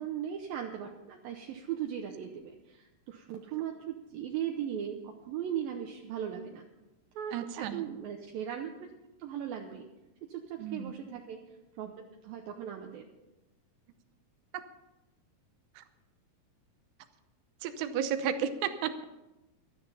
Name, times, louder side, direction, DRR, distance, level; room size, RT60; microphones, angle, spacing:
voice 1, 0.0-6.6 7.1-8.9 9.2-9.9 10.3-11.9 12.2-13.1, right 9 dB, 75° right, 3 dB, 2.4 m, -38 dB
voice 2, 7.3-7.8 10.6-10.9 14.5-14.6 15.8-15.9 17.6-19.0, right 8 dB, 90° right, 10 dB, 3.0 m, -33 dB
12.5 x 12.5 x 5.6 m, 1.0 s
omnidirectional pair, 4.6 m